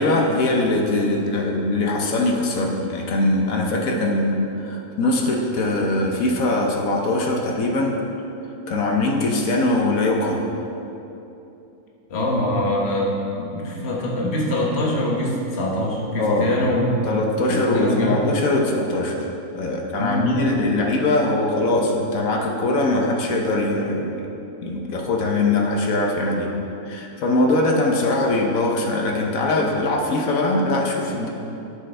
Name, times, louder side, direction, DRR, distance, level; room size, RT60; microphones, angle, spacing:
voice 1, 0.0-8.0 8.7-10.4 16.2-16.5 17.0-19.1 19.5-24.1 24.6-26.5 26.9-31.3, left 2 dB, 70° left, 0 dB, 1.2 m, -21 dB
voice 2, 12.1-17.0 17.5-18.3 20.0-20.4, left 1 dB, 45° left, -2 dB, 1.4 m, -24 dB
11.5 x 6.5 x 3.3 m, 2.9 s
omnidirectional pair, 1.6 m